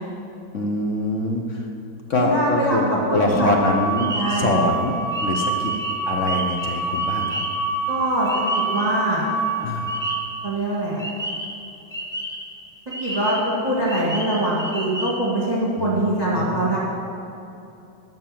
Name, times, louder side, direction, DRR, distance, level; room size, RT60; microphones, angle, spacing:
voice 1, 0.5-1.7 2.1-2.8 3.1-4.9 5.2-5.7 6.1-7.4 9.6-9.9 15.8-16.7, left 2 dB, 50° left, 2 dB, 1.0 m, -24 dB
voice 2, 2.1-3.5 4.1-4.5 7.9-8.3 8.5-9.3 10.4-11.0 13.0-16.8, right 1 dB, 20° right, -6 dB, 1.8 m, -23 dB
sound 1, 3.3-10.4, right 3 dB, 70° left, 1.9 m, -27 dB
sound 2, 3.6-9.0 9.3-10.4 11.0-12.6 12.9-15.1, equal, 5° left, 0.7 m, -32 dB
11.5 x 6.0 x 7.6 m, 2.7 s
omnidirectional pair, 2.2 m